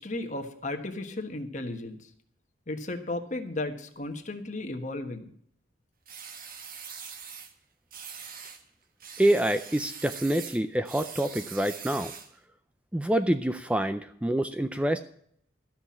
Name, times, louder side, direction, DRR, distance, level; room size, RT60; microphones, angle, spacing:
voice 1, 0.0-2.1 2.7-5.3, left 2 dB, 40° left, 6 dB, 1.4 m, -35 dB
sound 1, 6.1-7.5 7.9-8.6 9.0-12.4, right 6 dB, 50° right, 1.4 m, -42 dB
voice 2, 9.2-12.1 12.9-15.0, right 1 dB, 5° right, 9 dB, 0.4 m, -26 dB
13.5 x 6.0 x 8.6 m, 0.65 s
head